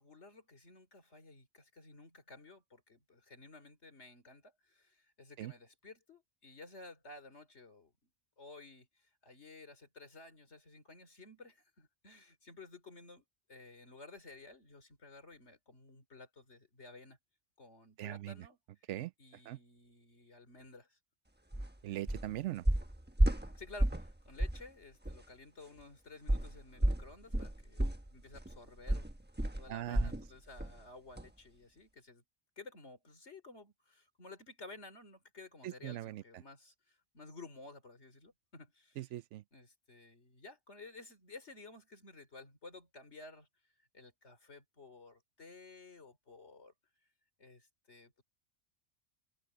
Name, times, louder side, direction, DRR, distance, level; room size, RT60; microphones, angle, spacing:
voice 1, 0.0-8.1 8.4-17.2 17.6-18.6 19.2-21.0 23.5-29.1 29.6-32.2 32.6-39.0 39.5-43.5 43.9-46.7 47.4-48.2, left 3 dB, 75° left, 3.7 m, -54 dB
voice 2, 18.0-18.5 18.9-19.1 19.5-19.6 21.8-22.6 29.7-30.1 35.6-36.2 39.0-39.4, right 14 dB, 90° right, 0.9 m, -40 dB
sound 1, 21.5-21.7 22.1-22.3 22.7-24.1 24.4-24.7 25.0-25.2 26.3-30.3 30.6-30.8 31.2-31.3, right 1 dB, 10° right, 1.1 m, -32 dB
omnidirectional pair, 1.2 m